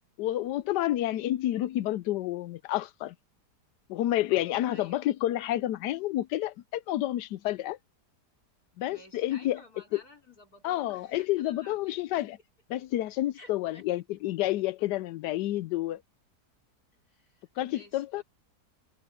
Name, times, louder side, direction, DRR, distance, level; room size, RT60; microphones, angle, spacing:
voice 1, 0.2-3.1 3.9-7.8 8.8-9.6 9.9-10.0 10.6-12.4 12.7-16.0 17.6-18.2, left 14 dB, 85° left, 1.2 m, -29 dB
voice 2, 4.7-5.0 8.8-12.0 13.3-13.8 17.1-18.2, left 2 dB, 60° left, 5.9 m, -53 dB
omnidirectional pair, 1.8 m